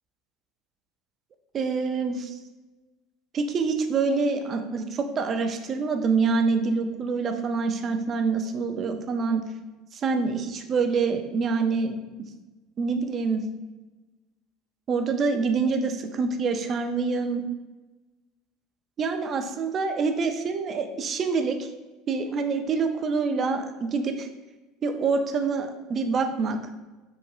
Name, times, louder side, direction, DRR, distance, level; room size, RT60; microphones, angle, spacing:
voice 1, 1.5-2.3 3.3-9.4 9.9-12.0 12.8-13.4 14.9-17.4 19.0-21.7 22.1-24.3 24.8-26.6, right 4 dB, 40° right, 6 dB, 0.3 m, -26 dB
3.0 x 2.2 x 2.3 m, 1.2 s
hypercardioid pair, 75°, 0 cm